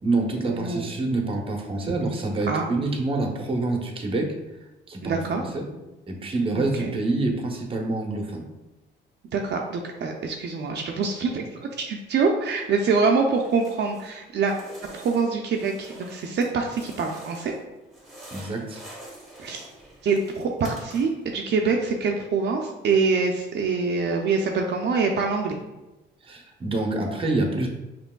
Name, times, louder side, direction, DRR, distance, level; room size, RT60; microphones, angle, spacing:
voice 1, 0.0-4.3 4.9-5.7 6.1-8.5 18.3-18.8 26.2-27.7, right 2 dB, 25° right, 2 dB, 0.8 m, -27 dB
voice 2, 0.5-0.9 2.5-2.6 5.0-5.4 6.5-6.9 9.3-14.5 14.9-17.5 19.4-19.7 20.0-25.6, right 4 dB, 60° right, 1 dB, 0.5 m, -25 dB
sound 1, 13.3-14.2 14.4-17.6 17.9-21.3, right 1 dB, ahead, 1.3 m, -46 dB
5.1 x 3.0 x 2.2 m, 1.0 s
cardioid pair, 90°, 20 cm